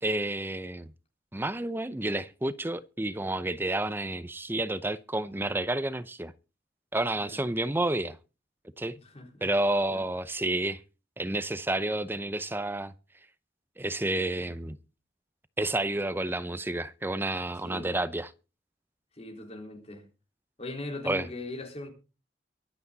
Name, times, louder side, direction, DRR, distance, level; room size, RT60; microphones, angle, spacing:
voice 1, 0.0-0.9 1.3-6.3 6.9-8.2 8.8-9.0 9.4-10.8 11.2-12.9 13.8-14.8 15.6-18.3 21.0-21.3, right 1 dB, 10° right, 0.6 m, -30 dB
voice 2, 9.0-9.5 9.9-10.0 17.6-18.0 19.1-20.0 20.6-21.9, left 2 dB, 35° left, 4.1 m, -40 dB
23.5 x 8.4 x 4.0 m
head